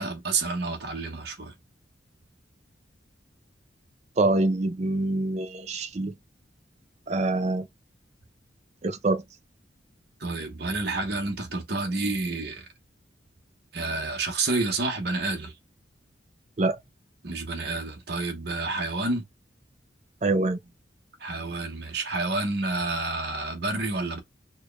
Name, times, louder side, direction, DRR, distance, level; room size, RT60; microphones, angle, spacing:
voice 1, 0.0-1.5 10.2-12.6 13.7-15.5 17.2-19.2 21.2-24.2, right 3 dB, 55° right, 1.1 m, -29 dB
voice 2, 4.2-6.1 7.1-7.7 8.8-9.2 16.6-16.8 20.2-20.6, right 2 dB, 35° right, 0.5 m, -25 dB
4.4 x 2.3 x 3.2 m
head